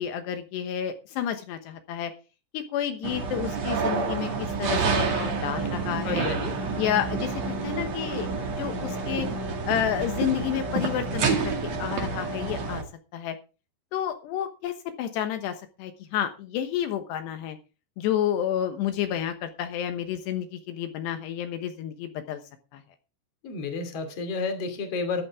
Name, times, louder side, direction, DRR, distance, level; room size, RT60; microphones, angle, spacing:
voice 1, 0.0-2.1 2.5-6.3 6.8-8.3 8.6-9.3 9.7-11.5 11.8-12.8 13.1-13.4 13.9-17.6 18.0-22.4 22.7-22.8, left 10 dB, 80° left, 7 dB, 3.2 m, -30 dB
Welding Prep, 3.0-12.8, right 4 dB, 45° right, 3.0 m, -29 dB
voice 2, 6.0-6.5 23.4-25.2, left 4 dB, 40° left, 7 dB, 3.1 m, -30 dB
14.0 x 12.0 x 3.6 m, 0.32 s
omnidirectional pair, 4.9 m